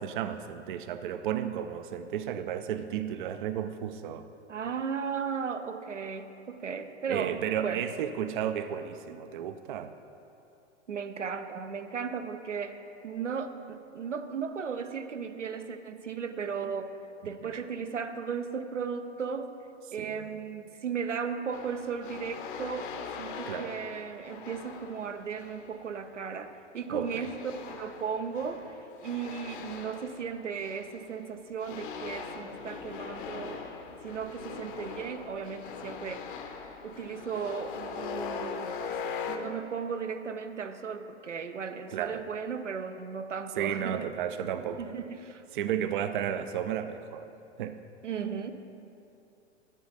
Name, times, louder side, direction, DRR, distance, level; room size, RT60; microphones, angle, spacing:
voice 1, 0.0-4.3 7.1-9.9 17.4-17.5 20.0-20.2 23.5-23.7 26.9-27.3 41.9-42.2 43.6-44.9 45.5-47.3 47.6-47.8, right 9 dB, 45° right, 10 dB, 0.5 m, -33 dB
voice 2, 4.5-7.4 7.6-7.9 10.9-17.0 17.2-19.5 19.9-33.7 34.0-36.3 36.8-38.8 39.3-44.1 44.8-45.4 48.0-48.5, right 6 dB, 80° right, 8 dB, 0.7 m, -36 dB
sound 1, 21.5-25.7 27.1-31.2 31.6-39.4, left 6 dB, 45° left, 0.9 m, -41 dB
11.0 x 10.0 x 4.0 m, 2.7 s
figure-of-eight pair, 105°, 36 cm